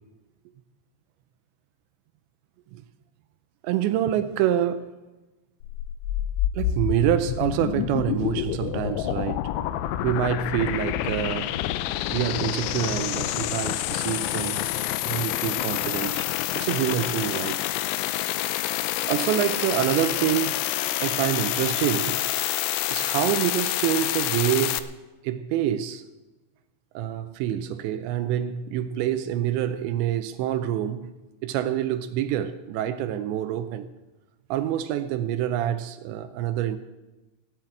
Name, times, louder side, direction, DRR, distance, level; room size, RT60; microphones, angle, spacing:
voice 1, 3.6-4.9 6.5-9.5 10.0-11.6 12.1-14.6 15.1-16.3 16.6-17.6 19.1-20.6 21.0-22.2 22.9-24.9 25.2-26.0 27.0-31.1 31.4-33.9 34.5-36.8, right 11 dB, 80° right, 2.7 m, -26 dB
sound 1, 5.6-24.8, left 13 dB, 80° left, 2.9 m, -28 dB
16.0 x 7.4 x 8.8 m
omnidirectional pair, 5.6 m